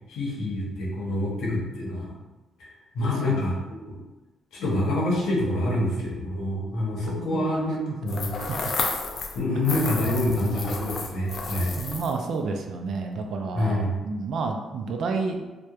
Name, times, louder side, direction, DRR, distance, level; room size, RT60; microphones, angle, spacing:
voice 1, 0.1-2.1 2.9-3.5 3.9-4.0 4.5-8.4 9.3-11.8 13.5-13.9, left 1 dB, 80° left, -4 dB, 0.7 m, -26 dB
voice 2, 3.0-3.5 7.2-7.5 8.1-8.7 11.8-15.4, right 4 dB, 65° right, 4 dB, 0.3 m, -30 dB
sound 1, 8.1-9.4 9.6-12.2, left 4 dB, 50° left, 0.3 m, -31 dB
2.8 x 2.1 x 2.3 m, 1.2 s
cardioid pair, 90°, 0 cm